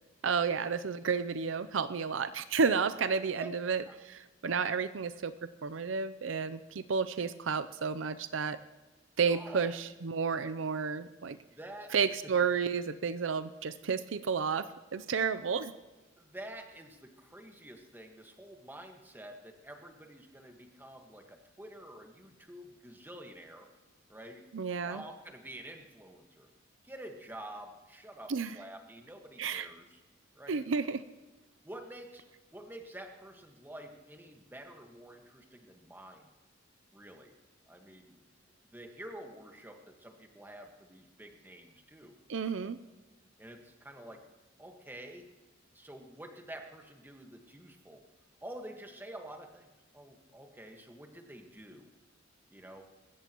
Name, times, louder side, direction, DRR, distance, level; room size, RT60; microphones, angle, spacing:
voice 1, 0.2-5.3 5.6-8.6 9.2-11.4 11.9-15.7 24.5-25.0 28.3-28.6 29.4-29.7 30.5-31.0 42.3-42.8, right 5 dB, 75° right, 13 dB, 0.6 m, -31 dB
voice 2, 9.3-9.7 11.5-11.9 16.2-23.7 24.1-24.5 24.8-26.5 26.8-30.0 30.3-30.6 31.6-32.2 32.5-36.3 36.9-37.3 37.7-38.2 38.7-42.2 43.4-44.2 44.6-45.3 45.7-48.0 48.4-49.7 49.9-51.9 52.5-52.9, right 1 dB, 10° right, 4 dB, 1.5 m, -48 dB
24.5 x 14.0 x 3.0 m, 1.2 s
head